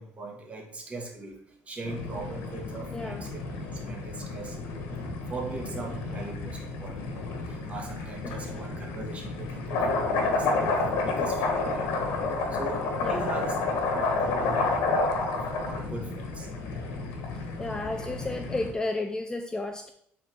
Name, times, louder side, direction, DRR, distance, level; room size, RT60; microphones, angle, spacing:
voice 1, 0.0-1.3 1.7-3.4 3.7-4.6 5.3-11.9 12.5-13.6 13.9-16.5, right 3 dB, 30° right, 0 dB, 1.9 m, -40 dB
sound 1, 1.8-18.7, left 3 dB, 85° left, 1.4 m, -30 dB
voice 2, 2.9-3.2 8.2-8.6 13.0-13.3 13.9-14.0 17.3-19.9, left 2 dB, 15° left, 5 dB, 0.5 m, -33 dB
9.1 x 4.0 x 3.6 m, 0.70 s
cardioid pair, 110°, 5 cm